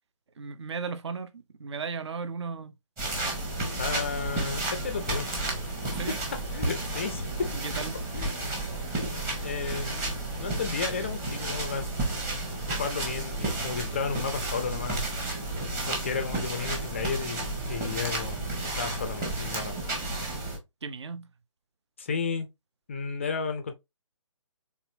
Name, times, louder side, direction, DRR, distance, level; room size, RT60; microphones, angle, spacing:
voice 1, 0.4-2.7 5.9-6.2 7.5-8.0 18.8-18.9 20.8-21.3, right 5 dB, 55° right, 0.6 m, -36 dB
sound 1, 3.0-20.6, right 2 dB, 15° right, 1.0 m, -32 dB
voice 2, 3.8-5.3 6.5-7.5 8.1-8.6 9.4-10.1 10.4-11.9 12.8-15.0 15.9-18.5 18.8-19.7 22.0-22.5 22.9-23.7, left 5 dB, 25° left, 0.4 m, -33 dB
4.1 x 3.4 x 2.5 m
figure-of-eight pair, 140°, 17 cm